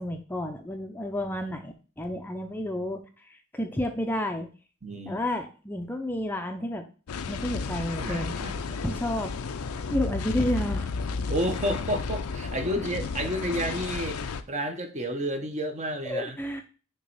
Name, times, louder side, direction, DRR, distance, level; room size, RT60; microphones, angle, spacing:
voice 1, 0.0-4.5 5.1-6.8 7.3-8.3 8.8-9.3 9.9-10.9 16.1-16.6, left 1 dB, 10° left, 4 dB, 0.5 m, -31 dB
voice 2, 4.8-5.2 8.0-9.0 11.3-14.2 14.5-16.4, equal, 35° right, 6 dB, 0.8 m, -31 dB
sound 1, 7.1-14.4, left 4 dB, 90° left, 0.5 m, -32 dB
6.4 x 2.9 x 5.5 m, 0.36 s
head